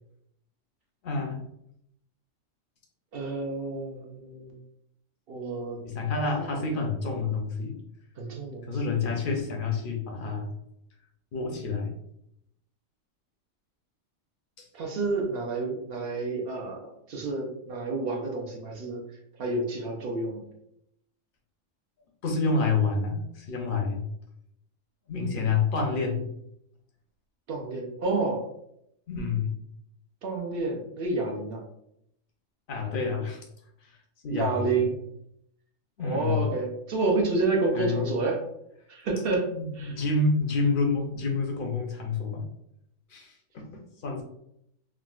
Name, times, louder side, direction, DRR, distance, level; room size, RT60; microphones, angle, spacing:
voice 1, 1.0-1.4 5.8-7.8 8.7-10.5 11.3-11.9 14.6-14.7 22.2-24.0 25.1-26.2 29.1-29.5 32.7-33.5 33.8-34.0 34.2-34.7 36.0-36.5 37.7-38.0 39.5-42.4 43.1-44.2, left 4 dB, 55° left, 1 dB, 0.6 m, -28 dB
voice 2, 3.1-4.6 5.3-5.8 6.4-6.6 8.2-8.6 14.7-19.0 19.4-20.4 27.5-28.5 30.2-31.6 34.3-35.0 36.0-38.4 38.9-40.0, right 3 dB, 60° right, 0 dB, 0.7 m, -29 dB
3.6 x 2.2 x 2.3 m, 0.76 s
omnidirectional pair, 1.3 m